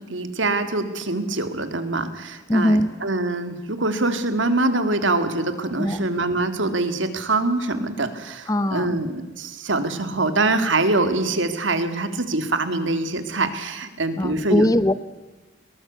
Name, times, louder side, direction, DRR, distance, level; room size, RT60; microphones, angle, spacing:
voice 1, 0.1-14.7, right 2 dB, 80° right, 9 dB, 2.2 m, -24 dB
voice 2, 2.5-2.9 5.8-6.1 8.5-9.0 14.2-14.9, left 1 dB, 15° left, 14 dB, 0.7 m, -20 dB
21.5 x 19.5 x 8.3 m, 1.2 s
head